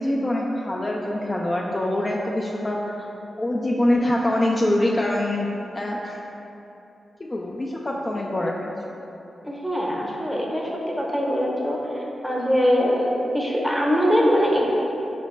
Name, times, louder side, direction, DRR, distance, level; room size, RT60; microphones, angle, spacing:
voice 1, 0.0-3.1 3.4-6.2 7.2-8.7, left 1 dB, 30° left, -2 dB, 0.3 m, -24 dB
voice 2, 9.4-14.7, equal, ahead, -3 dB, 0.8 m, -22 dB
4.8 x 2.1 x 3.2 m, 3.0 s
cardioid pair, 50°, 0 cm